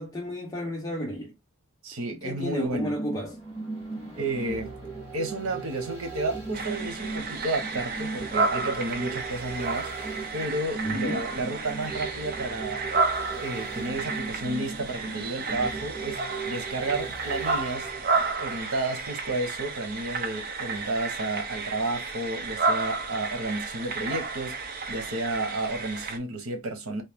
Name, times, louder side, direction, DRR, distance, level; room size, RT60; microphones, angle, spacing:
voice 1, 0.0-1.3 2.1-3.4 10.8-11.2, equal, 15° left, 0.6 m, -33 dB
voice 2, 1.8-3.0 4.2-4.8 5.1-9.9 10.3-12.8 13.3-24.5 24.9-27.0, right 2 dB, 80° right, 1.1 m, -32 dB
sound 1, 2.6-18.9 19.2-19.3, right 3 dB, 10° right, 2.2 m, -38 dB
sound 2, 6.5-26.2, right 4 dB, 40° right, 0.6 m, -32 dB
3.2 x 2.7 x 3.6 m
head